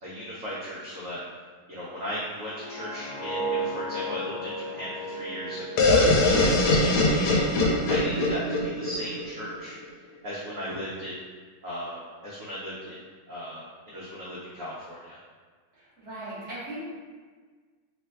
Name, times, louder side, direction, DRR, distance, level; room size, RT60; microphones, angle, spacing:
voice 1, 0.0-1.2 1.7-9.8 10.2-11.1 11.6-13.0 13.3-15.2, equal, 80° right, -8 dB, 0.7 m, -37 dB
sound 1, 2.3-7.3 7.7-8.0, right 1 dB, 65° left, 1.2 m, -35 dB
sound 2, 5.8-9.5, left 2 dB, 85° left, 1.4 m, -22 dB
voice 2, 15.7-16.8, right 1 dB, 50° right, -11 dB, 1.0 m, -38 dB
3.3 x 2.2 x 3.3 m, 1.5 s
omnidirectional pair, 2.2 m